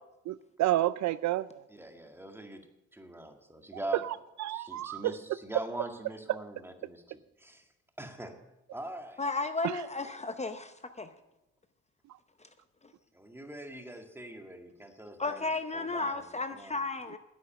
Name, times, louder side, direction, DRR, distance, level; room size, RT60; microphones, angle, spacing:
voice 1, 0.3-1.6 4.0-5.0, right 14 dB, 65° right, 0.4 m, -30 dB
voice 2, 1.7-2.6 2.9-4.0 4.5-7.7 8.0-8.4 8.7-9.2 13.1-15.5 15.7-16.2 16.5-16.8, right 1 dB, 10° right, 1.9 m, -43 dB
voice 3, 9.2-11.1 12.4-12.5 15.2-17.2, left 3 dB, 20° left, 0.8 m, -34 dB
10.5 x 8.3 x 8.8 m
cardioid pair, 90°, 30 cm